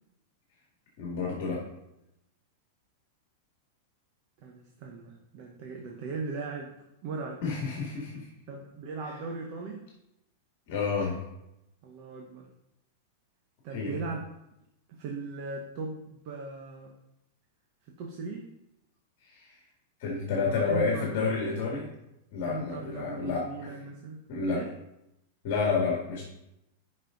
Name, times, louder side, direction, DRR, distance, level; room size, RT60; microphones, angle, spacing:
voice 1, 1.0-1.6 7.4-8.3 10.7-11.2 13.7-14.0 19.3-19.5 20.0-21.9 22.3-23.4 24.3-24.6 25.4-26.2, left 4 dB, 40° left, -3 dB, 2.1 m, -29 dB
voice 2, 4.4-6.7 7.0-7.4 8.5-9.9 11.8-12.5 13.6-14.2 14.9-16.9 18.0-18.5 20.3-21.1 22.4-24.2 24.5-24.7, right 4 dB, 30° right, 0 dB, 0.9 m, -38 dB
11.5 x 5.5 x 3.9 m, 0.88 s
supercardioid pair, 180°, 0 cm